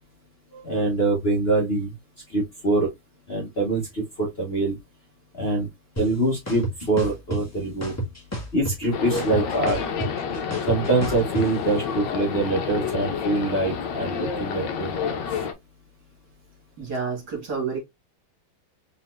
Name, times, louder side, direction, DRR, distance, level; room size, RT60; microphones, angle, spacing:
voice 1, 0.5-1.9 2.3-2.9 3.3-4.8 5.4-5.7 6.0-7.9 8.5-9.8 10.7-14.9, right 2 dB, 35° left, 1.2 m, -24 dB
sound 1, 6.0-6.1 6.5-7.4 7.8-8.9 9.2-11.4, right 1 dB, 10° left, 1.3 m, -30 dB
sound 2, 8.9-15.5, left 6 dB, 65° left, 1.4 m, -29 dB
voice 2, 16.8-17.8, right 5 dB, 55° right, 2.5 m, -29 dB
4.2 x 4.1 x 2.5 m
omnidirectional pair, 2.2 m